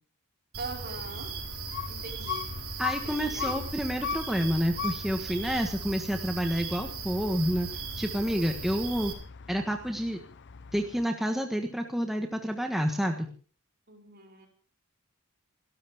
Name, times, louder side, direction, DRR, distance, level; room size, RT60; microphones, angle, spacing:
sound 1, 0.5-9.1, right 4 dB, 70° right, 4.9 m, -38 dB
voice 1, 0.6-1.3 1.9-2.5 3.0-3.6 13.9-14.5, right 3 dB, 45° right, 1 dB, 5.1 m, -42 dB
sound 2, 0.9-11.0, left 7 dB, 55° left, 0.7 m, -40 dB
voice 2, 2.8-7.7 8.0-9.1 9.5-10.2 10.7-13.3, equal, ahead, 3 dB, 1.4 m, -29 dB
29.0 x 13.0 x 3.6 m, 0.42 s
head